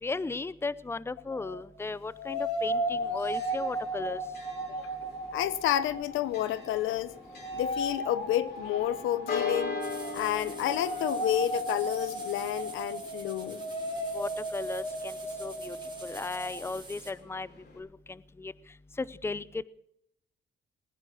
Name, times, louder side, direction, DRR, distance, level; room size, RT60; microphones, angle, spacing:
voice 1, 0.0-4.2 14.1-15.8 16.0-17.5 17.8-18.5 19.0-19.6, left 3 dB, 10° left, 0.6 m, -36 dB
sound 1, 1.3-1.6 2.1-6.9 7.2-16.7, right 1 dB, 30° left, 4.4 m, -36 dB
Church bell, 2.7-17.8, left 5 dB, 55° left, 4.9 m, -42 dB
voice 2, 5.3-7.1 7.5-9.8 10.1-13.6, left 13 dB, 90° left, 0.8 m, -30 dB
sound 2, 9.8-17.1, right 3 dB, 20° right, 3.8 m, -48 dB
20.0 x 9.8 x 6.2 m
cardioid pair, 90°, 20 cm